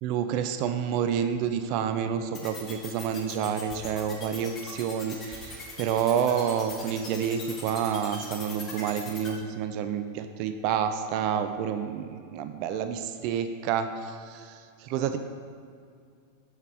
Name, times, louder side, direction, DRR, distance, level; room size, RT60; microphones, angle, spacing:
voice 1, 0.0-15.2, right 8 dB, 45° right, 9 dB, 0.4 m, -29 dB
sound 1, 2.3-9.3, left 4 dB, 25° left, 1.5 m, -41 dB
6.6 x 6.3 x 4.8 m, 2.3 s
figure-of-eight pair, 90°, 0 cm